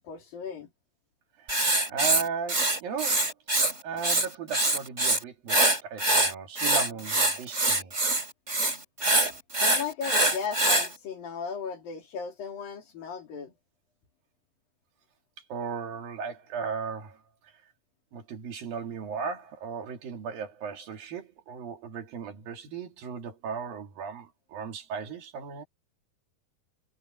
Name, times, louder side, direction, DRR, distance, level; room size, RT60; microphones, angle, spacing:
voice 1, 0.0-0.7 9.1-9.2 9.6-13.5, left 6 dB, 75° left, 5.2 m, -36 dB
Writing, 1.5-3.7 4.0-5.2 5.5-10.9, right 2 dB, 20° right, 4.3 m, -24 dB
voice 2, 1.9-3.3 3.8-7.9 15.5-17.2 18.1-25.7, right 6 dB, 80° right, 4.5 m, -36 dB
omnidirectional pair, 4.0 m